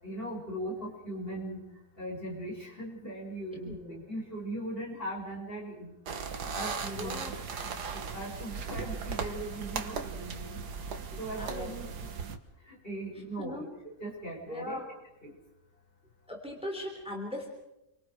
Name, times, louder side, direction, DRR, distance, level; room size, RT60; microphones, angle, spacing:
voice 1, 0.0-1.6 2.0-3.8 4.1-5.9 6.5-7.2 7.6-10.6 11.2-12.1 12.6-13.7 14.0-14.8 15.2-15.3, right 1 dB, 35° left, -2 dB, 6.9 m, -39 dB
voice 2, 3.7-4.0 6.9-7.4 11.4-11.7 13.4-13.7 14.5-14.9 16.3-17.5, left 1 dB, 5° right, 1 dB, 3.5 m, -39 dB
sound 1, 6.1-12.4, right 5 dB, 85° right, 2.0 m, -37 dB
29.0 x 24.5 x 4.8 m, 0.89 s
omnidirectional pair, 1.7 m